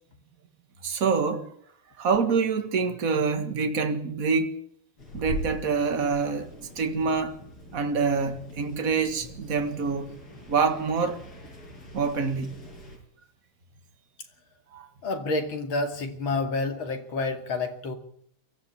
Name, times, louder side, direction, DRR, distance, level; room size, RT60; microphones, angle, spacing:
voice 1, 0.8-1.5 2.0-4.6 5.1-7.4 7.7-10.2 10.5-11.2 11.9-12.5 14.7-14.9, right 5 dB, 40° right, 2.1 m, -26 dB
sound 1, 5.0-13.0, left 1 dB, 90° left, 6.3 m, -41 dB
voice 2, 15.0-18.0, left 3 dB, 65° left, 3.2 m, -29 dB
23.5 x 14.0 x 8.4 m
omnidirectional pair, 2.4 m